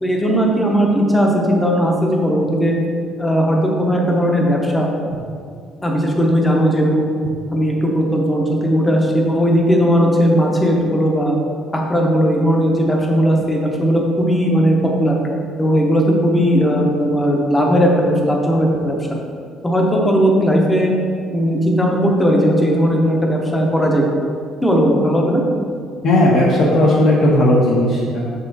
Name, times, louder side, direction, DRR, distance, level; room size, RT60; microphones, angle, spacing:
voice 1, 0.0-2.7 3.2-4.9 5.8-7.0 7.5-11.4 11.7-15.2 15.6-19.0 19.6-20.9 21.3-24.0 24.6-25.4, equal, 10° left, 0 dB, 0.8 m, -17 dB
voice 2, 26.0-28.2, left 1 dB, 55° left, -6 dB, 1.1 m, -14 dB
6.8 x 5.5 x 4.1 m, 2.2 s
cardioid pair, 175°, 0 cm